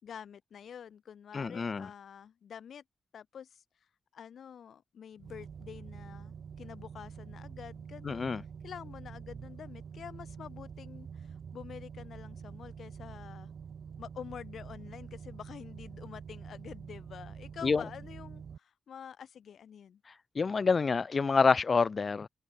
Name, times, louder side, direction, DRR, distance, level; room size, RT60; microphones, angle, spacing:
voice 1, 0.0-2.8 3.1-3.6 4.1-8.3 8.6-13.5 14.0-20.0, left 8 dB, 85° left, 4.5 m, -47 dB
voice 2, 1.3-1.9 8.0-8.4 17.6-17.9 20.4-22.3, left 4 dB, 40° left, 0.4 m, -27 dB
sound 1, 5.2-18.6, right 7 dB, 60° right, 2.7 m, -46 dB
wide cardioid pair, 160°, 0 cm